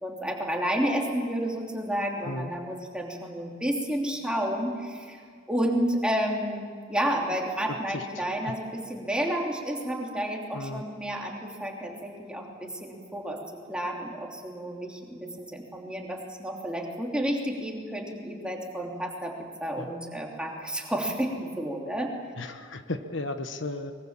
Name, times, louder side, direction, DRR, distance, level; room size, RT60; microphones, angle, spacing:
voice 1, 0.0-5.2 5.5-13.4 13.7-19.3 19.6-22.1, equal, 5° right, -1 dB, 3.0 m, -31 dB
voice 2, 10.5-10.9 19.8-19.9 22.4-23.9, left 2 dB, 65° left, 8 dB, 1.3 m, -34 dB
24.0 x 23.0 x 7.5 m, 2.1 s
head